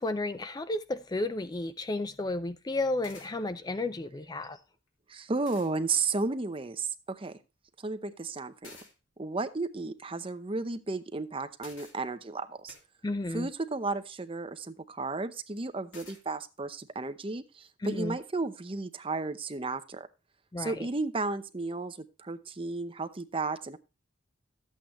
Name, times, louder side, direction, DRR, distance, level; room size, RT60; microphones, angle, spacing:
voice 1, 0.0-4.6 13.0-13.5 17.8-18.2 20.5-20.9, left 2 dB, 20° left, 0.4 m, -32 dB
sound 1, 3.0-3.3 4.9-5.0 5.4-5.7 8.6-8.9 11.6-11.9 12.7-12.8 15.9-16.2, left 3 dB, 75° left, 2.8 m, -49 dB
voice 2, 5.1-7.4 7.8-8.7 9.2-12.7 13.3-20.1 20.6-23.8, right 3 dB, 25° right, 0.7 m, -33 dB
13.0 x 8.4 x 3.0 m
head